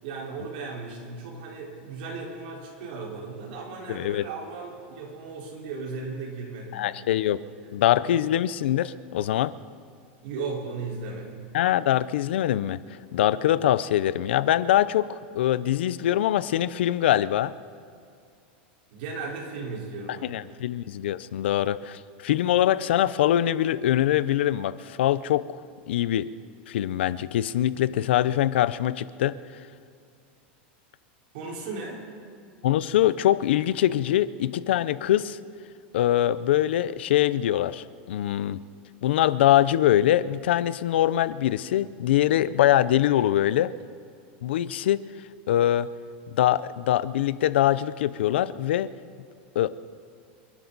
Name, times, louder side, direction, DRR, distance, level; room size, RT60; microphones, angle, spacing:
voice 1, 0.0-7.1 7.6-7.7 10.2-11.5 18.9-20.4 31.3-32.0, right 4 dB, 60° right, -2 dB, 4.5 m, -36 dB
voice 2, 3.9-4.2 6.7-7.4 7.7-9.5 11.5-12.8 13.1-17.5 20.2-25.6 25.9-26.3 26.7-29.4 32.6-35.4 35.9-38.6 39.0-43.7 44.4-45.0 45.5-45.9 46.3-48.9 49.5-49.7, left 12 dB, 90° left, 16 dB, 0.6 m, -23 dB
29.0 x 11.5 x 4.1 m, 2.3 s
supercardioid pair, 165°, 6 cm